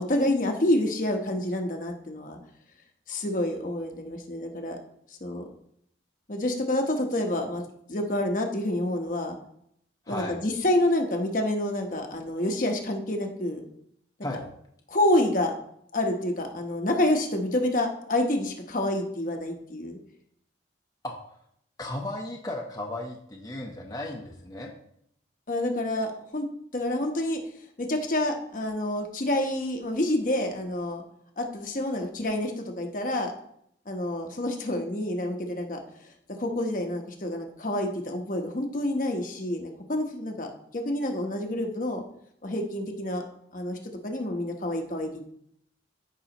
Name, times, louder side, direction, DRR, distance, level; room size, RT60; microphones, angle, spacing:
voice 1, 0.0-2.4 3.1-4.8 5.2-5.4 6.3-7.6 7.9-9.4 10.1-13.6 14.9-15.5 15.9-20.0 25.5-26.4 26.7-27.4 27.8-31.0 31.4-33.3 33.9-35.8 36.4-42.0 42.4-43.2 43.5-45.2, left 1 dB, 45° left, 3 dB, 1.0 m, -28 dB
voice 2, 10.1-10.4 14.2-14.5 21.0-21.4 21.8-24.7, left 1 dB, 20° left, -1 dB, 0.8 m, -35 dB
14.0 x 5.5 x 2.9 m, 0.71 s
head